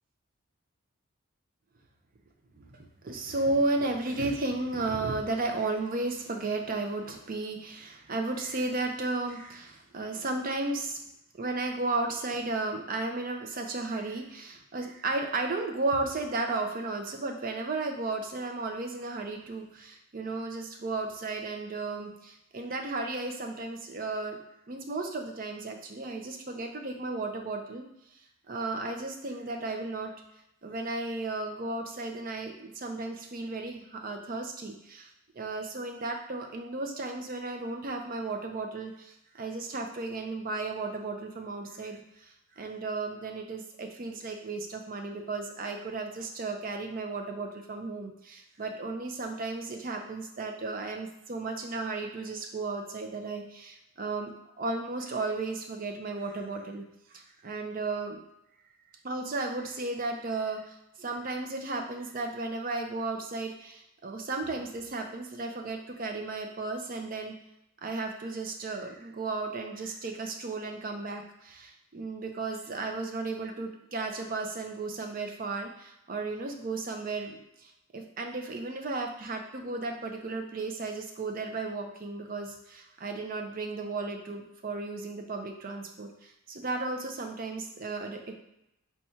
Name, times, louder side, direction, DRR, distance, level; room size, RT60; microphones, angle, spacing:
voice 1, 2.5-11.0 11.4-24.4 24.7-27.8 28.5-30.1 30.6-35.1 35.3-54.3 54.6-56.8 57.1-58.2 59.0-67.3 67.8-88.4, right 3 dB, 40° right, 4 dB, 0.5 m, -34 dB
4.2 x 2.3 x 4.3 m, 0.83 s
head